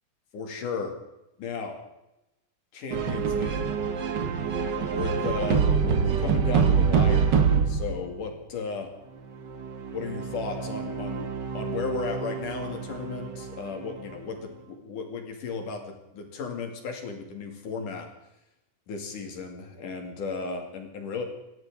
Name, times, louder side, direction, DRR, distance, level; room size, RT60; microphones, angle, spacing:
voice 1, 0.3-1.0 1.4-1.8 2.7-3.7 4.9-7.3 7.7-8.9 9.9-18.1 18.9-21.2, left 4 dB, 80° left, 3 dB, 4.0 m, -35 dB
sound 1, 2.9-8.1 9.3-14.2, right 6 dB, 60° right, 1.1 m, -26 dB
28.0 x 12.5 x 3.8 m, 0.92 s
omnidirectional pair, 3.6 m